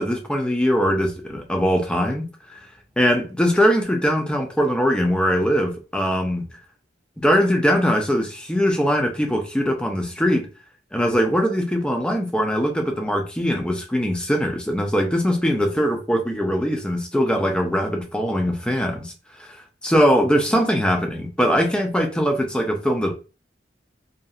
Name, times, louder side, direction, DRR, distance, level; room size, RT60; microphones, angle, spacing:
voice 1, 0.0-2.3 3.0-6.5 7.2-10.5 10.9-19.1 19.4-19.6 19.8-23.1, equal, 5° left, 0.4 m, -21 dB
2.7 x 2.4 x 2.3 m
head